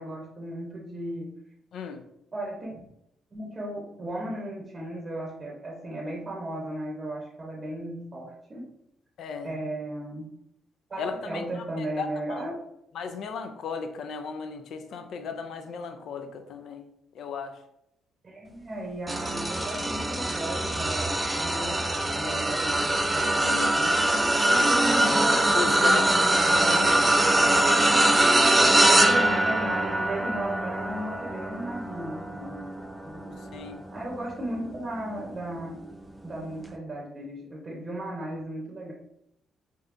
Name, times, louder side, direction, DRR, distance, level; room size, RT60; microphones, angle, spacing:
voice 1, 0.0-1.4 2.3-2.8 3.3-8.7 9.4-10.3 10.9-12.5 18.2-23.9 24.9-25.4 25.7-26.0 27.4-28.0 28.8-32.7 33.0-33.4 33.9-35.8 36.2-38.9, right 1 dB, 30° right, -2 dB, 0.7 m, -35 dB
voice 2, 1.7-2.0 9.2-9.5 11.0-12.4 12.9-16.9 17.1-17.5 24.4-24.8 25.4-26.1 26.5-26.9 33.5-33.8, left 5 dB, 70° left, 7 dB, 0.4 m, -36 dB
sound 1, 19.1-34.6 35.1-35.4 36.6-36.7, right 1 dB, 15° right, 0.3 m, -23 dB
3.4 x 2.6 x 2.5 m, 0.80 s
cardioid pair, 90°, 0 cm